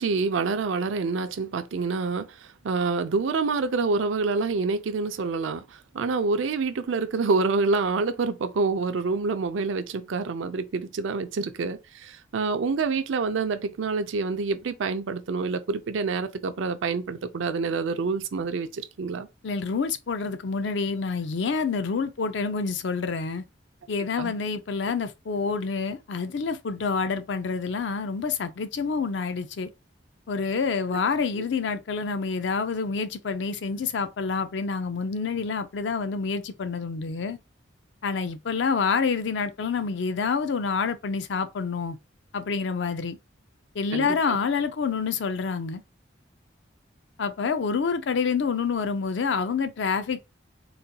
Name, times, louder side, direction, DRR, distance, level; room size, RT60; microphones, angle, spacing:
voice 1, 0.0-19.3 24.2-24.3 43.9-44.4, right 4 dB, 80° right, 0.4 m, -27 dB
voice 2, 19.4-23.4 23.9-29.7 30.3-37.4 38.0-42.0 42.3-43.2 43.7-45.8 47.2-50.2, left 5 dB, 65° left, 0.4 m, -27 dB
3.9 x 2.2 x 2.7 m
head